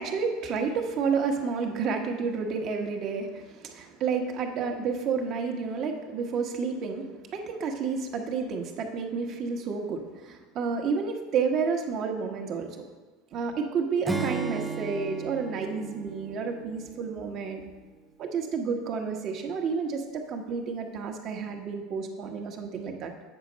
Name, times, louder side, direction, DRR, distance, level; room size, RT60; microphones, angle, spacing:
voice 1, 0.0-12.8 13.3-17.6 18.2-23.1, right 5 dB, 50° right, 4 dB, 1.1 m, -30 dB
Acoustic guitar / Strum, 14.0-17.5, right 3 dB, 5° right, 0.7 m, -35 dB
8.0 x 5.2 x 5.1 m, 1.3 s
hypercardioid pair, 100°, 0 cm